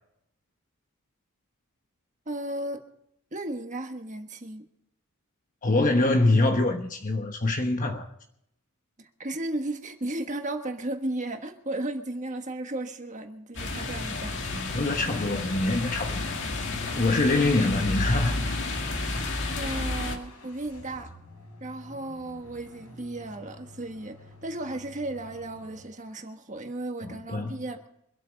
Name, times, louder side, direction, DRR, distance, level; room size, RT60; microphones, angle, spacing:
voice 1, 2.2-2.8 3.3-4.6 9.0-14.4 19.5-21.1 21.6-27.8, right 1 dB, 35° right, 1.4 m, -35 dB
voice 2, 5.6-8.1 14.7-16.3 16.9-18.6 27.0-27.5, left 2 dB, 35° left, 1.1 m, -24 dB
sound 1, 13.6-20.2, left 2 dB, 55° left, 2.2 m, -31 dB
sound 2, 19.0-25.8, left 1 dB, 85° left, 4.1 m, -50 dB
25.0 x 8.6 x 5.2 m
head